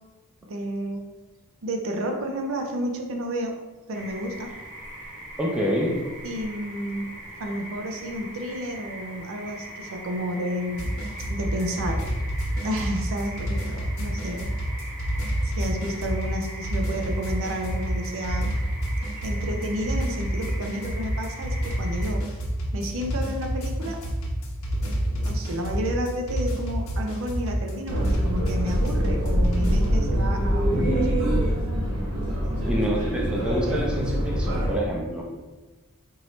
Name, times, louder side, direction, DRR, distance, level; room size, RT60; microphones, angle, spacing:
voice 1, 0.5-1.0 1.6-3.5 3.9-4.5 6.2-7.1 7.4-10.9 11.3-12.0 12.6-14.5 15.4-18.6 19.2-22.2 22.7-24.0 24.8-31.1, equal, 65° right, 2 dB, 0.5 m, -31 dB
sound 1, 3.9-22.1, right 1 dB, 40° right, 0.9 m, -41 dB
voice 2, 5.4-6.0 32.7-35.3, equal, 5° right, -3 dB, 0.6 m, -27 dB
sound 2, 10.8-30.0, equal, 65° left, 1.0 m, -28 dB
sound 3, 27.9-34.7, equal, 85° right, 1.1 m, -24 dB
4.6 x 2.6 x 3.1 m, 1.2 s
head